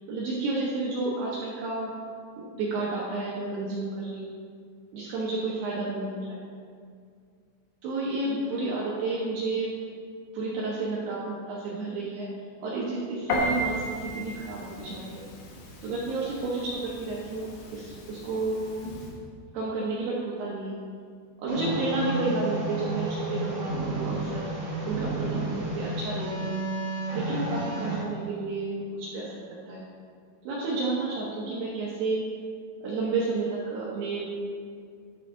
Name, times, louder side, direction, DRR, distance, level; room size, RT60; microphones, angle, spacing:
voice 1, 0.1-1.9 2.4-4.3 4.9-6.4 7.8-9.7 10.3-12.3 12.6-15.2 15.8-17.5 17.7-18.6 19.5-20.7 21.4-25.4 25.8-26.6 27.1-29.8 30.4-32.2 32.8-34.3, right 3 dB, 70° right, -6 dB, 2.7 m, -31 dB
Piano, 13.3-19.1, equal, 70° left, 2.8 m, -35 dB
sound 1, 21.5-28.0, right 2 dB, 45° right, 2.3 m, -31 dB
10.5 x 5.7 x 3.7 m, 2.2 s
omnidirectional pair, 5.5 m